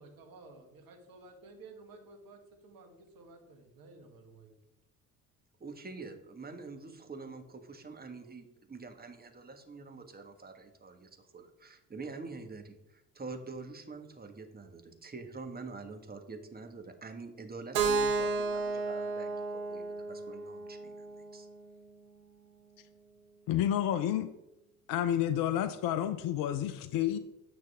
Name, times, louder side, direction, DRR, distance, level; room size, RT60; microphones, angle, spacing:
voice 1, 0.0-4.5, right 3 dB, 50° right, 2.0 m, -54 dB
voice 2, 5.6-21.5, right 4 dB, 20° right, 1.5 m, -46 dB
Keyboard (musical), 17.7-21.7, right 4 dB, 75° right, 1.2 m, -33 dB
voice 3, 23.5-24.3 24.9-27.2, left 11 dB, 50° left, 0.7 m, -30 dB
9.5 x 5.9 x 3.5 m
figure-of-eight pair, 55°, 44 cm